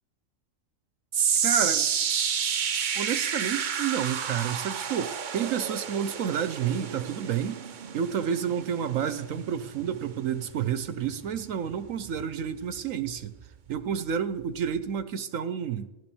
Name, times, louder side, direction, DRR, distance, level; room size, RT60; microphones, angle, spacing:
sound 1, 1.1-13.4 13.8-14.1 14.8-14.9, right 7 dB, 45° right, 0.7 m, -31 dB
voice 1, 1.4-1.9 2.9-7.6 7.9-13.4 13.7-15.9, right 8 dB, 70° right, 12 dB, 1.1 m, -30 dB
15.5 x 11.0 x 7.1 m, 1.0 s
omnidirectional pair, 1.5 m